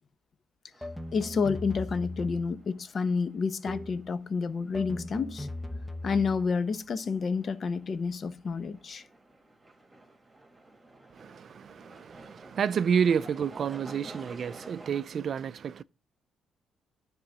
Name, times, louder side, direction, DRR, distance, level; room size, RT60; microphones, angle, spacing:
sound 1, 0.7-15.0, right 2 dB, 20° right, 1.8 m, -52 dB
sound 2, 0.8-2.6 3.7-4.1 4.7-6.5, left 1 dB, 5° left, 0.6 m, -38 dB
voice 1, 1.1-5.5 6.0-9.0, left 5 dB, 45° left, 0.8 m, -29 dB
voice 2, 11.1-15.8, right 7 dB, 55° right, 0.4 m, -30 dB
9.9 x 3.7 x 7.3 m
cardioid pair, 90°, 0 cm